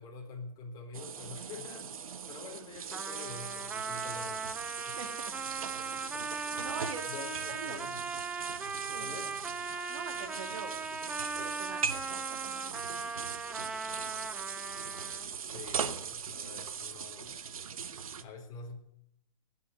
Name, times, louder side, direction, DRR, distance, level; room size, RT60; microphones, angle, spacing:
voice 1, 0.0-4.5 4.9-5.0 7.1-8.0 9.0-9.3 15.4-17.3 18.2-18.8, left 4 dB, 20° left, 1 dB, 4.0 m, -46 dB
sound 1, 0.9-18.2, right 7 dB, 90° right, 1.4 m, -40 dB
Trumpet, 2.9-15.4, right 4 dB, 5° right, 0.6 m, -39 dB
voice 2, 6.6-7.8 8.9-9.2 9.9-10.7 11.1-12.8, right 7 dB, 65° right, 7 dB, 2.5 m, -44 dB
19.5 x 7.3 x 9.5 m, 0.76 s
hypercardioid pair, 155°, 18 cm